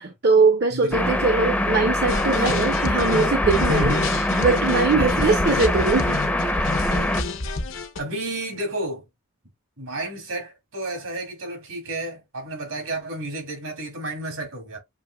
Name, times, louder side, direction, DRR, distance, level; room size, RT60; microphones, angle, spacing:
voice 1, 0.0-3.9 4.4-6.1, right 4 dB, 50° right, 0.7 m, -21 dB
voice 2, 0.7-1.1 3.7-4.1 5.0-5.2 8.0-9.0 9.8-14.8, right 1 dB, 80° right, 2.6 m, -31 dB
sound 1, 0.9-7.2, left 1 dB, 5° left, 0.5 m, -23 dB
sound 2, 2.1-8.0, left 2 dB, 65° left, 0.8 m, -28 dB
6.9 x 3.0 x 2.2 m
head